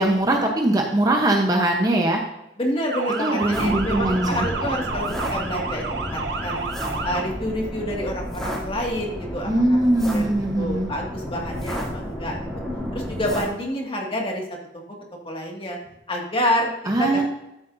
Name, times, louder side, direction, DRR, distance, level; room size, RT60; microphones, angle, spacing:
voice 1, 0.0-2.2 3.2-4.5 9.5-10.9 16.9-17.2, right 1 dB, 20° right, 1 dB, 0.9 m, -21 dB
voice 2, 2.6-6.7 7.0-10.2 10.6-12.5 12.9-14.4 15.2-15.8 16.1-16.7 17.0-17.2, equal, 30° left, 0 dB, 2.0 m, -28 dB
Motor vehicle (road) / Siren, 2.9-7.2, right 4 dB, 65° right, 1.2 m, -30 dB
sound 1, 3.5-13.5, equal, 5° left, 2.7 m, -31 dB
12.5 x 8.3 x 2.7 m, 0.88 s
head